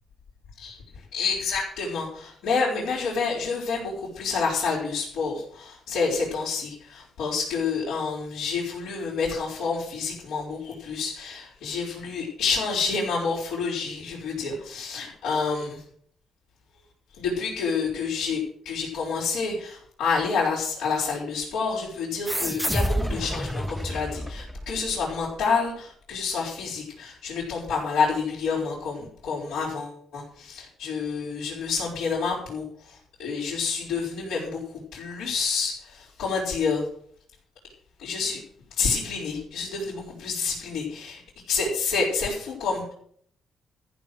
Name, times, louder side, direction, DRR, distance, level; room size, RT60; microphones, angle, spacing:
voice 1, 0.6-15.8 17.2-34.6 34.9-36.8 38.0-38.4 38.8-41.2 41.5-42.9, left 5 dB, 90° left, -7 dB, 5.2 m, -28 dB
sound 1, 22.3-25.3, equal, ahead, 0.7 m, -29 dB
14.5 x 7.2 x 7.9 m, 0.62 s
cardioid pair, 90°, 0 cm